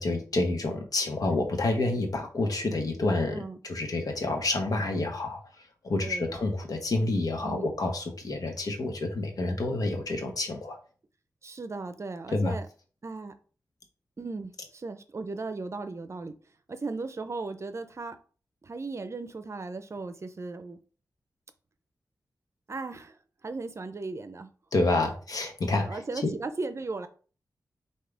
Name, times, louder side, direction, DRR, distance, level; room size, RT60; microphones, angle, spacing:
voice 1, 0.0-5.4 5.8-10.8 12.3-12.5 24.7-26.3, left 2 dB, 70° left, 4 dB, 1.1 m, -28 dB
voice 2, 11.4-12.7 13.0-13.3 14.2-16.3 16.7-18.2 18.6-20.8 22.7-24.5 25.7-27.1, right 3 dB, 45° right, 10 dB, 0.5 m, -37 dB
4.8 x 2.8 x 3.3 m, 0.39 s
cardioid pair, 70°, 7 cm